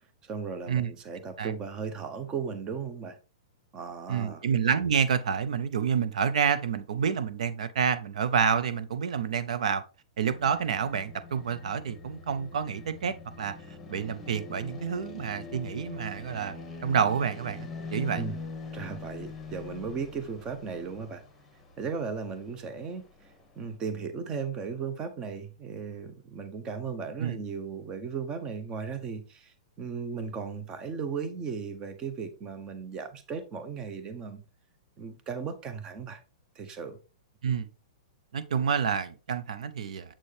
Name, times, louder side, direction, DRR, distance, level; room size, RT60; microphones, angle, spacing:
voice 1, 0.2-3.2 3.7-4.4 18.2-18.4 18.7-21.2 21.8-34.4 35.0-36.2 36.6-37.0, right 5 dB, 20° right, 0.8 m, -36 dB
voice 2, 4.1-9.8 10.2-13.5 13.9-16.5 16.8-18.2 27.2-27.4 37.4-37.7 38.3-40.1, right 7 dB, 80° right, 0.5 m, -28 dB
sound 1, 10.3-23.7, left 4 dB, 5° left, 1.5 m, -44 dB
7.3 x 4.3 x 3.3 m
hypercardioid pair, 155°, 4 cm